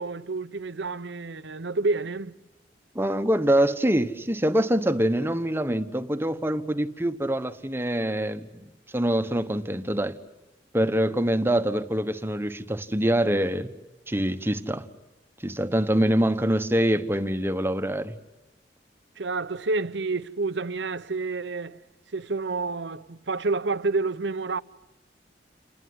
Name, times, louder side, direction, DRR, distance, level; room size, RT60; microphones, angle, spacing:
voice 1, 0.0-2.3 19.2-21.8 22.1-24.6, right 3 dB, 80° right, 0.9 m, -29 dB
voice 2, 2.9-10.2 10.7-13.7 14.1-14.9 15.4-18.2, right 1 dB, 15° right, 1.2 m, -25 dB
29.5 x 21.0 x 9.6 m
head